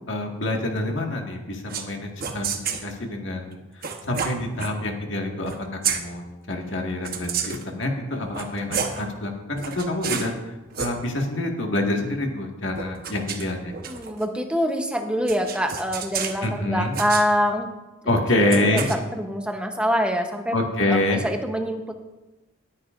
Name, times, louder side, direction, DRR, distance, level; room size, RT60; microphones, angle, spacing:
voice 1, 0.1-10.3 10.8-13.7 16.4-17.0 18.0-18.9 20.5-21.2, left 1 dB, 65° left, 1 dB, 1.8 m, -26 dB
sound 1, 1.7-1.9 2.2-2.9 3.8-4.7 5.4-5.6 5.8-6.0 7.0-7.7 8.2-9.0 9.6-10.3 10.7-10.9 12.7-14.2 15.3-16.5 16.9-17.3 18.5-19.0, right 6 dB, 45° right, 1.0 m, -30 dB
voice 2, 13.9-17.7 18.7-20.6 20.9-21.9, equal, 5° right, 4 dB, 0.9 m, -25 dB
19.5 x 9.7 x 2.6 m, 1.1 s
head